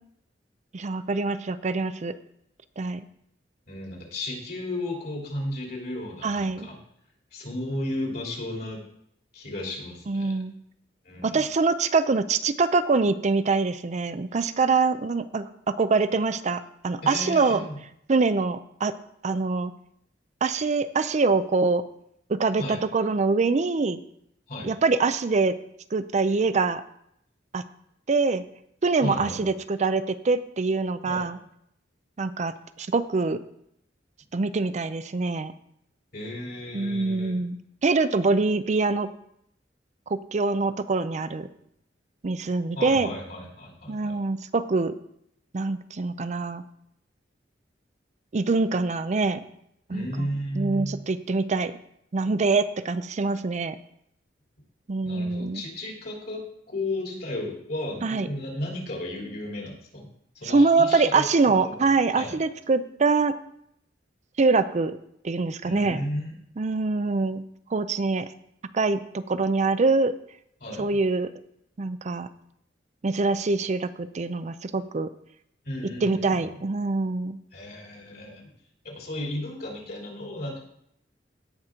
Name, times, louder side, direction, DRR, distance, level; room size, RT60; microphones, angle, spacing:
voice 1, 0.7-2.1 2.8-3.0 6.2-6.7 10.1-10.6 11.2-17.6 18.1-18.9 19.2-19.7 20.4-21.8 22.3-24.0 24.6-25.5 25.9-26.8 27.5-27.6 28.1-28.4 28.8-31.4 32.2-32.5 32.8-33.4 34.3-35.5 36.7-39.1 40.1-41.5 42.2-43.1 43.9-44.9 45.5-46.6 48.3-49.4 49.9-51.7 52.1-53.8 54.9-55.6 58.0-58.3 60.4-63.3 64.4-65.0 65.2-66.1 66.6-67.4 67.7-68.3 68.7-70.1 70.8-71.3 71.8-72.3 73.0-75.1 76.0-77.4, right 3 dB, 40° right, 11 dB, 0.5 m, -24 dB
voice 2, 3.7-6.8 7.3-8.8 9.3-10.3 11.0-11.4 17.0-17.8 22.6-22.8 24.5-24.7 29.0-29.4 31.0-31.3 36.1-37.4 42.7-44.2 49.9-51.0 55.0-56.4 56.7-60.1 60.3-61.2 61.6-62.4 65.6-66.3 70.6-70.9 75.6-76.5 77.5-78.5 78.8-80.6, left 1 dB, 60° left, -1 dB, 3.2 m, -34 dB
17.0 x 6.0 x 3.7 m, 0.72 s
head